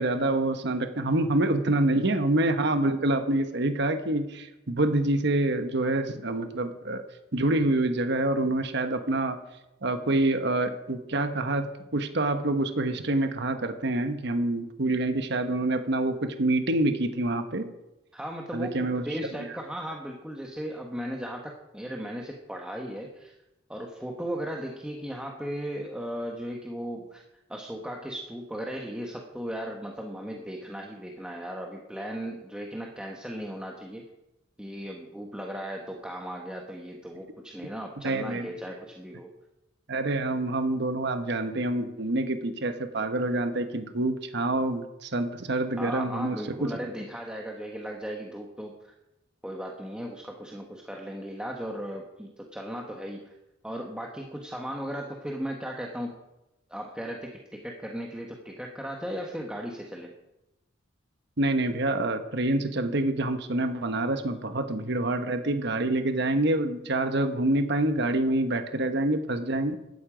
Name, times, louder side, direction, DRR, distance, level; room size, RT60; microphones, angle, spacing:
voice 1, 0.0-7.0 7.3-9.4 9.8-17.7 18.5-19.1 38.0-38.5 39.9-46.7 61.4-69.8, right 2 dB, 60° right, 8 dB, 1.2 m, -26 dB
voice 2, 18.1-23.3 23.7-27.2 27.5-34.0 34.6-39.3 45.8-48.9 49.4-53.4 53.6-56.2 56.7-60.1, equal, 5° right, 0 dB, 1.3 m, -36 dB
16.0 x 12.5 x 5.1 m, 0.95 s
head